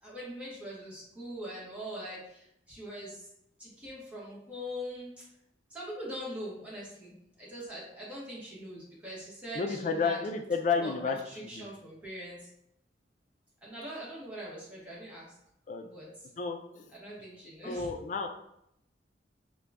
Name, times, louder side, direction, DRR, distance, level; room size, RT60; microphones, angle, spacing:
voice 1, 0.0-3.3 3.6-5.2 5.7-10.2 10.8-12.5 13.6-15.3 15.8-16.1 16.9-17.9, equal, 5° right, -7 dB, 1.1 m, -42 dB
voice 2, 9.5-11.2 11.4-11.6 15.7-15.8 16.4-16.9 17.6-18.3, left 5 dB, 45° left, 5 dB, 0.4 m, -31 dB
3.7 x 2.2 x 3.4 m, 0.78 s
head